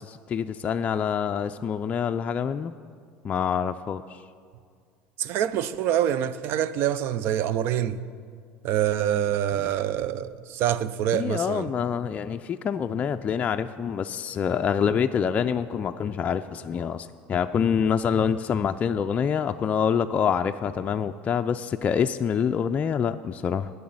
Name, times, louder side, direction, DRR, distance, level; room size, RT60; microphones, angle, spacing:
voice 1, 0.0-2.7 3.2-4.2 9.6-9.7 11.1-23.7, left 7 dB, 35° left, 0.4 m, -26 dB
voice 2, 5.2-8.0 8.6-11.7, right 10 dB, 60° right, 0.5 m, -26 dB
10.0 x 6.9 x 8.8 m
supercardioid pair, 100°, 4 cm